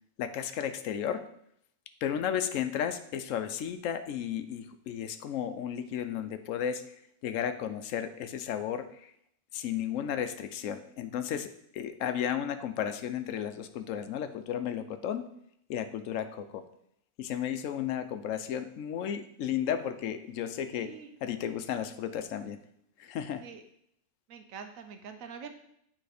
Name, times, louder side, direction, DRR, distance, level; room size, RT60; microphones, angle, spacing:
voice 1, 0.2-1.2 2.0-6.8 7.2-9.1 9.5-15.3 15.7-16.6 17.2-20.9 21.2-22.6 23.0-23.4, left 9 dB, 75° left, 10 dB, 1.0 m, -33 dB
voice 2, 20.7-21.1 23.4-23.6 24.3-25.5, right 6 dB, 80° right, 7 dB, 1.0 m, -45 dB
9.2 x 3.4 x 4.9 m, 0.72 s
omnidirectional pair, 1.4 m